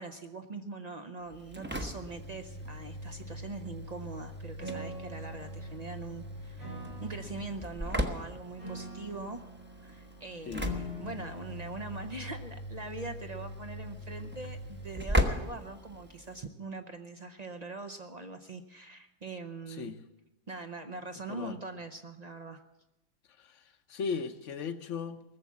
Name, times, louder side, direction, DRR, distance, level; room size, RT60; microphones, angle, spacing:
voice 1, 0.0-9.5 9.8-19.9 20.5-22.6, right 3 dB, 45° right, 7 dB, 0.5 m, -42 dB
Engine / Slam, 1.3-16.4, equal, 10° right, 0.7 m, -38 dB
Piano, 4.6-12.6, left 1 dB, 80° right, 7.4 m, -45 dB
voice 2, 23.9-25.2, left 5 dB, 55° left, 10 dB, 1.1 m, -37 dB
19.5 x 7.4 x 8.3 m, 0.95 s
omnidirectional pair, 1.7 m